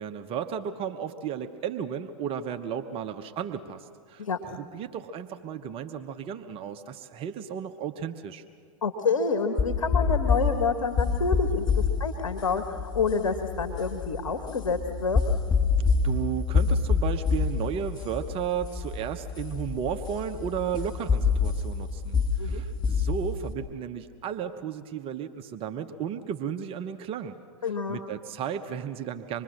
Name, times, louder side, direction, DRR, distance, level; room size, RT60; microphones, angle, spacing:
voice 1, 0.0-8.4 16.0-27.3 27.9-29.4, right 8 dB, 35° right, 8 dB, 1.0 m, -34 dB
voice 2, 8.8-15.2 22.4-22.6 27.6-28.0, left 5 dB, 80° left, 5 dB, 1.6 m, -28 dB
sound 1, 9.6-23.5, left 5 dB, 25° left, 2.3 m, -27 dB
26.0 x 22.0 x 6.5 m, 2.1 s
hypercardioid pair, 100°, 17 cm